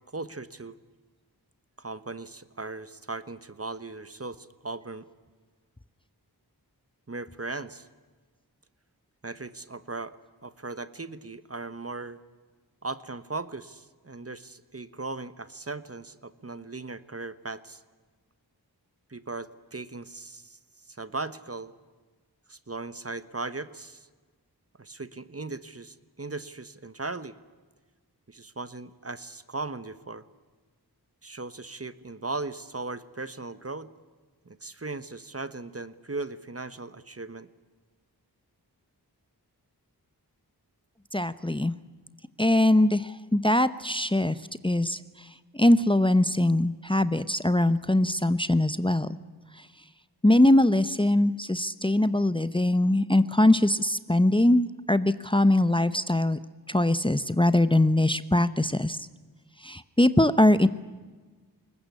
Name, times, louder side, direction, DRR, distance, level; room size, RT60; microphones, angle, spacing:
voice 1, 0.1-0.8 1.8-5.1 7.1-7.9 9.2-10.2 10.4-12.2 12.8-17.8 19.1-20.6 20.9-21.7 22.5-24.1 24.8-27.4 28.3-30.2 31.2-33.9 34.4-37.5, right 3 dB, 35° right, 14 dB, 1.3 m, -38 dB
voice 2, 41.1-41.7 42.4-44.4 44.6-45.3 45.5-49.1 49.5-49.7 50.2-56.4 56.7-59.1 59.6-60.7, left 1 dB, 15° left, 13 dB, 0.9 m, -22 dB
22.0 x 19.5 x 9.7 m, 1.4 s
cardioid pair, 40°, 40 cm